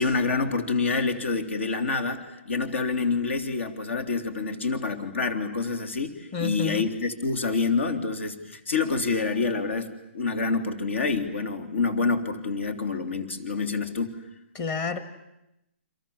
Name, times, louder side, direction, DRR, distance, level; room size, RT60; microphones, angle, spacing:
voice 1, 0.0-14.2, left 4 dB, 70° left, 7 dB, 3.5 m, -27 dB
voice 2, 6.3-6.9 14.5-15.0, left 5 dB, 20° left, 11 dB, 1.8 m, -29 dB
30.0 x 26.5 x 7.3 m, 0.89 s
hypercardioid pair, 165°, 7 cm